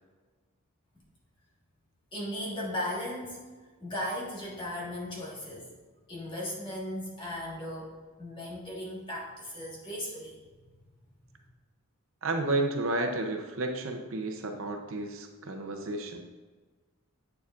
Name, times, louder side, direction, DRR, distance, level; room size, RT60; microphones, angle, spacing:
voice 1, 2.1-3.4 3.8-5.7 6.1-10.4, left 1 dB, 20° left, -5 dB, 1.6 m, -37 dB
voice 2, 12.2-16.2, right 2 dB, 65° right, 4 dB, 0.7 m, -31 dB
8.4 x 6.9 x 2.5 m, 1.3 s
head